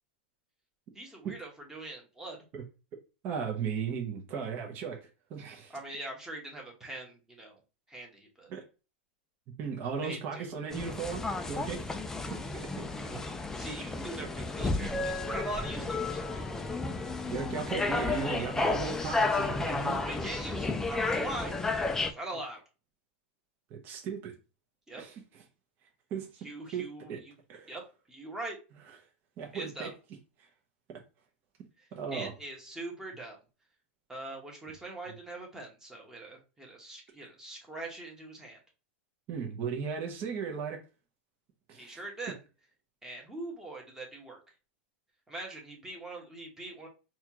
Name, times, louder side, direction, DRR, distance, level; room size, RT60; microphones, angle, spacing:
voice 1, 0.9-2.4 5.7-7.6 7.9-8.5 10.0-10.6 13.0-13.3 13.6-16.6 20.0-22.6 24.9-25.0 26.4-27.4 27.7-28.6 29.5-29.9 31.8-33.4 34.1-38.6 41.7-42.4 43.0-44.4 45.3-46.9, right 2 dB, 10° right, 1.1 m, -42 dB
voice 2, 3.2-5.7 8.5-8.6 9.6-11.9 14.2-14.3 17.3-20.0 23.7-24.3 25.0-25.1 26.1-26.3 26.7-27.2 27.5-27.7 29.4-29.9 30.9-31.0 31.9-32.3 37.2-37.3 39.3-40.8 41.7-42.0, right 6 dB, 35° right, 0.8 m, -36 dB
sound 1, 10.7-22.1, left 3 dB, 10° left, 0.3 m, -32 dB
4.2 x 2.4 x 2.9 m
supercardioid pair, 140°, 6 cm